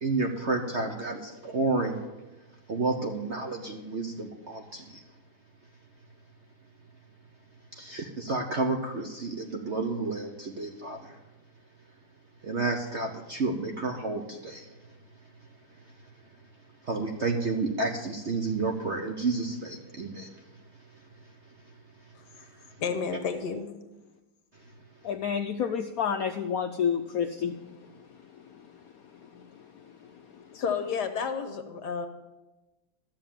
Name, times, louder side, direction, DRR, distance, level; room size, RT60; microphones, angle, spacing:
voice 1, 0.0-2.0 2.7-4.8 7.8-11.0 12.4-14.6 16.9-20.3, right 3 dB, 50° right, 3 dB, 0.9 m, -30 dB
voice 2, 22.8-23.7 30.5-32.1, left 6 dB, 60° left, 8 dB, 1.5 m, -31 dB
voice 3, 25.0-27.6 29.3-29.4, left 7 dB, 80° left, 6 dB, 0.7 m, -29 dB
13.0 x 7.5 x 7.2 m, 1.1 s
omnidirectional pair, 2.2 m